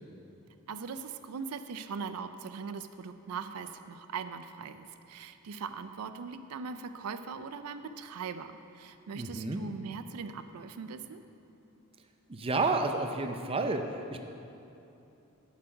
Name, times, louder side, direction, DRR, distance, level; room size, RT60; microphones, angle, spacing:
voice 1, 0.7-11.2, right 5 dB, 80° right, 10 dB, 0.4 m, -40 dB
voice 2, 9.1-9.6 12.3-14.2, right 3 dB, 25° right, 5 dB, 0.4 m, -31 dB
9.0 x 7.3 x 5.2 m, 2.8 s
head